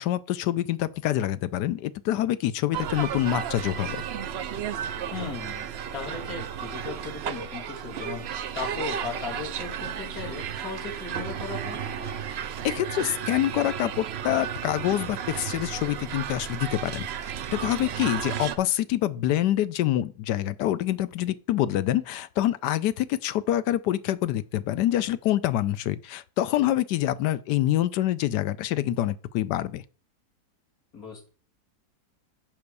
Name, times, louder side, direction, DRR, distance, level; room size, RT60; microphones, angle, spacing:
voice 1, 0.0-4.0 12.6-17.1 17.5-29.8, left 13 dB, 90° left, 1.3 m, -26 dB
sound 1, 2.7-18.6, right 8 dB, 65° right, 0.6 m, -33 dB
voice 2, 5.1-5.7 5.9-11.8 30.9-31.3, left 5 dB, 60° left, 3.2 m, -37 dB
7.8 x 5.3 x 6.8 m
omnidirectional pair, 1.7 m